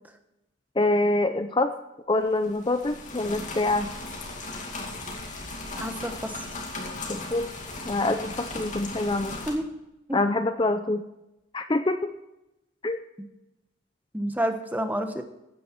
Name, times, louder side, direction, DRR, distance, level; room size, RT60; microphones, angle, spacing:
voice 1, 0.8-1.7 2.1-3.9 7.1-7.5 7.9-9.3 10.1-11.0 11.5-12.1 12.8-13.0, left 2 dB, 25° left, 8 dB, 0.5 m, -25 dB
sound 1, 2.3-9.6, left 2 dB, 40° left, 2.3 m, -37 dB
voice 2, 5.8-6.5 9.5-9.6 10.1-10.2 14.1-15.2, equal, 10° right, 7 dB, 1.1 m, -29 dB
16.0 x 9.5 x 4.6 m, 0.92 s
head